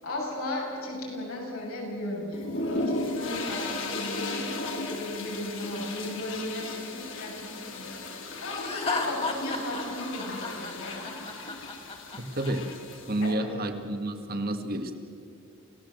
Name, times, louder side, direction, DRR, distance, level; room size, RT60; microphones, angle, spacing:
voice 1, 0.0-11.0 12.0-12.3 13.2-13.8, left 1 dB, 85° left, -3 dB, 7.4 m, -36 dB
sound 1, 2.3-13.3, left 2 dB, 65° left, 3.0 m, -36 dB
Laughter, 8.6-12.5, left 3 dB, 30° left, 2.4 m, -33 dB
voice 2, 12.1-12.7 13.1-14.9, right 1 dB, 45° right, 7 dB, 1.8 m, -30 dB
29.0 x 16.5 x 7.8 m, 2.4 s
head